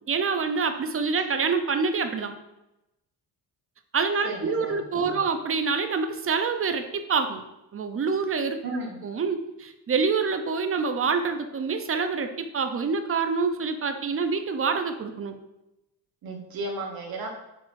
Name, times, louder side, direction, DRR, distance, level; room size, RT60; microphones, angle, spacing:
voice 1, 0.1-2.3 3.9-7.4 7.7-8.6 9.0-15.4, right 5 dB, 30° right, 7 dB, 0.5 m, -26 dB
voice 2, 4.2-5.2 8.6-9.0 16.2-17.3, right 2 dB, 55° right, 0 dB, 1.1 m, -34 dB
6.3 x 2.9 x 2.5 m, 0.90 s
supercardioid pair, 60°, 44 cm